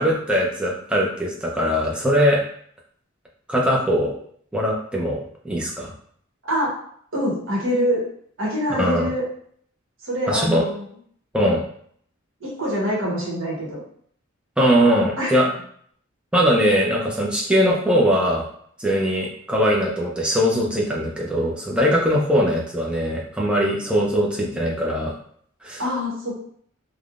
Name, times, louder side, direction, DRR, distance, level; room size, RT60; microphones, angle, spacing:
voice 1, 0.0-2.4 3.5-4.2 4.5-5.9 8.7-9.1 10.3-10.6 11.3-11.6 14.6-15.5 16.3-18.5 18.8-25.1 25.6-25.8, equal, 5° right, -3 dB, 0.5 m, -21 dB
voice 2, 6.4-6.7 7.1-8.0 8.4-9.2 10.0-10.9 12.4-13.8 15.2-15.4 21.9-22.1 25.8-26.3, equal, 65° right, -5 dB, 1.0 m, -25 dB
3.3 x 2.1 x 2.4 m, 0.62 s
head